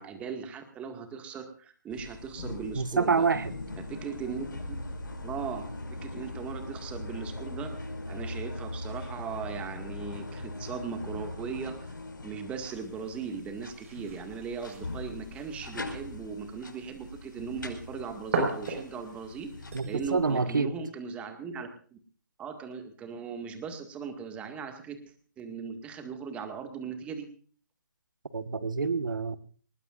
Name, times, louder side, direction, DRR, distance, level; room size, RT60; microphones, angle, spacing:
voice 1, 0.0-3.3 3.8-4.8 5.2-5.7 6.0-12.0 12.2-19.5 19.9-22.0 22.4-25.0 25.4-27.3, right 5 dB, 10° right, 7 dB, 2.0 m, -38 dB
sound 1, 1.9-19.8, left 2 dB, 75° left, 5.4 m, -41 dB
voice 2, 2.7-3.5 19.7-20.7 28.3-29.4, right 4 dB, 75° right, 13 dB, 1.4 m, -27 dB
sound 2, 12.6-20.4, right 3 dB, 40° right, 6.0 m, -39 dB
21.5 x 20.0 x 2.5 m, 0.43 s
hypercardioid pair, 150°, 10 cm